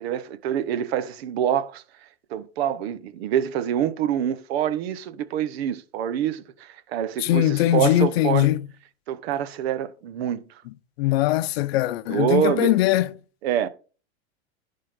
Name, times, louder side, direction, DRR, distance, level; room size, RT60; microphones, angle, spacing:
voice 1, 0.0-8.5 9.1-10.6 12.1-12.8 13.4-13.7, right 10 dB, 65° right, 1.0 m, -26 dB
voice 2, 7.2-8.6 11.0-13.1, left 15 dB, 60° left, 0.7 m, -21 dB
11.0 x 3.8 x 5.1 m
supercardioid pair, 135°, 34 cm